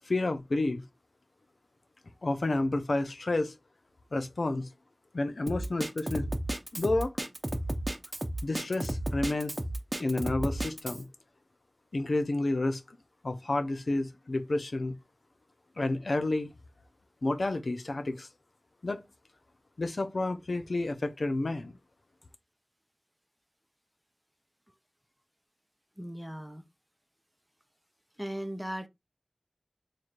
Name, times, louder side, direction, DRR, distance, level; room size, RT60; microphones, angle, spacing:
voice 1, 0.1-0.8 2.2-3.5 4.1-4.7 5.1-6.3 6.7-7.1 8.4-9.5 10.0-11.0 11.9-12.8 13.2-14.9 15.8-16.5 17.2-18.3 18.8-19.0 19.8-21.7, left 2 dB, 85° left, 0.5 m, -30 dB
Drum kit, 5.5-11.0, right 1 dB, 40° right, 0.7 m, -33 dB
voice 2, 26.0-26.6 28.2-28.9, equal, 5° right, 0.6 m, -37 dB
3.1 x 2.4 x 4.3 m
wide cardioid pair, 40°, 0 cm